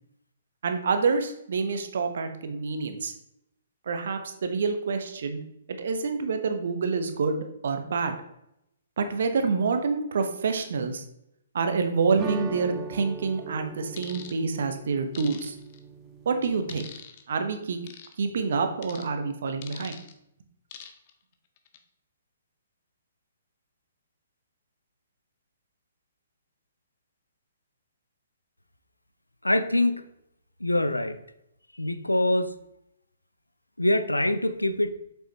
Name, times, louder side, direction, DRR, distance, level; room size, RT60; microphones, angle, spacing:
voice 1, 0.6-3.1 3.9-5.4 5.8-8.1 9.0-11.0 11.5-15.5 16.3-16.9 17.3-17.8 18.2-20.0, right 4 dB, 55° right, 7 dB, 0.9 m, -27 dB
sound 1, 12.2-17.0, right 4 dB, 20° right, 0.6 m, -40 dB
sound 2, 14.0-14.3 15.1-15.8 16.7-17.2 17.9-18.1 18.8-19.1 19.6-20.1 20.7-21.1 21.6-21.8, left 9 dB, 40° left, 0.7 m, -43 dB
voice 2, 29.4-30.0 30.6-31.2 31.7-32.5 33.8-34.9, left 1 dB, 85° left, 11 dB, 0.5 m, -24 dB
7.3 x 5.6 x 2.9 m, 0.80 s
figure-of-eight pair, 125°, 0 cm